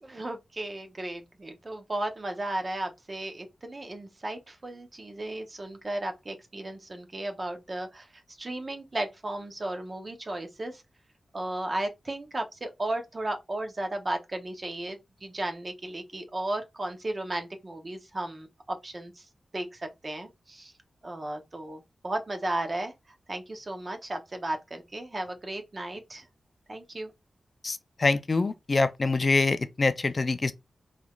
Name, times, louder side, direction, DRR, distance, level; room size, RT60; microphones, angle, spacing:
voice 1, 0.0-8.1 8.4-10.8 11.3-19.3 19.5-20.7 21.0-22.9 23.3-26.3 26.7-27.1, right 1 dB, 25° right, 0.6 m, -35 dB
voice 2, 27.6-30.5, left 3 dB, 30° left, 0.4 m, -25 dB
3.8 x 3.0 x 2.3 m
wide cardioid pair, 170°, 0 cm